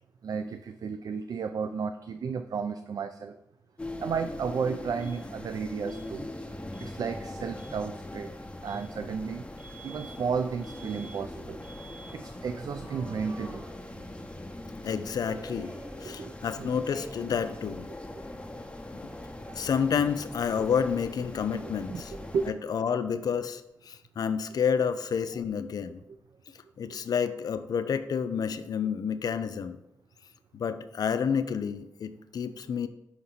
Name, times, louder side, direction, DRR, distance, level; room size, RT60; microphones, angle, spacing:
voice 1, 0.2-3.4 4.0-6.3 6.8-8.3 8.6-9.5 9.8-11.6 12.1-13.6 13.9-14.0 16.1-16.3 16.6-16.7 21.9-22.0 22.3-22.6 26.8-27.0, right 6 dB, 65° right, 9 dB, 0.3 m, -33 dB
sound 1, 3.8-22.5, left 1 dB, 15° left, 0.8 m, -41 dB
Alarm, 5.0-5.2 5.9-6.1 6.7-6.9 7.5-7.8 8.6-8.9 9.6-10.2 10.6-11.2 11.6-12.2 12.7-14.3 15.3-16.5 16.8-17.4 17.6-19.4, right 2 dB, 25° right, 1.4 m, -50 dB
voice 2, 14.8-15.7 16.0-17.9 19.5-22.1 22.5-26.0 26.8-29.8 30.5-32.9, left 7 dB, 70° left, 10 dB, 0.4 m, -29 dB
5.8 x 4.2 x 3.9 m, 0.86 s
cardioid pair, 50°, 7 cm